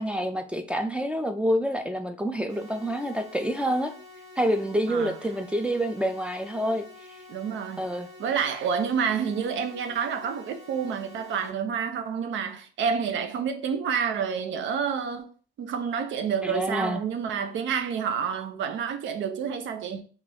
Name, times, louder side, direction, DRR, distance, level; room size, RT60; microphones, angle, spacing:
voice 1, 0.0-3.9 4.4-6.8 7.8-8.1 16.4-17.0, equal, 5° right, 0.4 m, -27 dB
sound 1, 2.5-11.5, left 3 dB, 40° right, 1.3 m, -48 dB
voice 2, 7.3-7.8 8.2-15.3 15.6-20.0, right 7 dB, 75° right, 0.6 m, -29 dB
3.0 x 2.4 x 4.1 m
cardioid pair, 90°, 20 cm